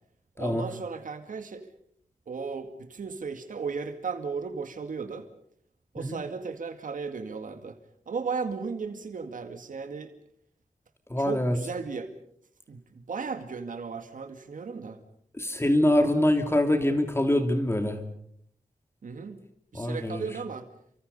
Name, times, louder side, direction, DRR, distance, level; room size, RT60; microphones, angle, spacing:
voice 1, 0.4-1.7 2.3-5.3 5.9-7.8 8.1-10.1 11.2-12.1 12.7-15.0 19.0-19.4 19.7-20.7, right 5 dB, 90° right, 7 dB, 2.2 m, -35 dB
voice 2, 11.1-11.6 15.3-18.0 19.7-20.2, left 1 dB, 20° left, 6 dB, 2.8 m, -24 dB
29.5 x 25.0 x 5.5 m, 0.66 s
wide cardioid pair, 100°, 13 cm